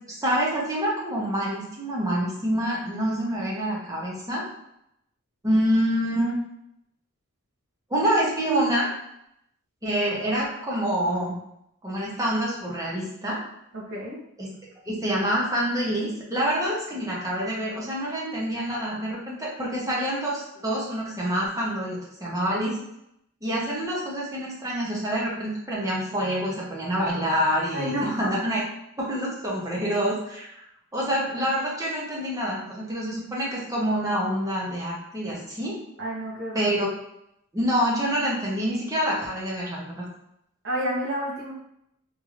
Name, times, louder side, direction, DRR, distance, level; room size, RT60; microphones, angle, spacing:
voice 1, 0.1-4.4 5.4-6.4 7.9-8.9 9.8-11.3 11.8-13.4 14.4-14.5 14.9-22.8 23.4-28.6 29.0-30.6 30.9-35.8 36.5-36.9 37.5-40.0, equal, 15° right, -4 dB, 0.7 m, -26 dB
voice 2, 13.7-14.2 27.7-28.3 36.0-36.7 40.6-41.5, equal, 55° right, -3 dB, 0.9 m, -30 dB
3.2 x 3.0 x 2.4 m, 0.78 s
head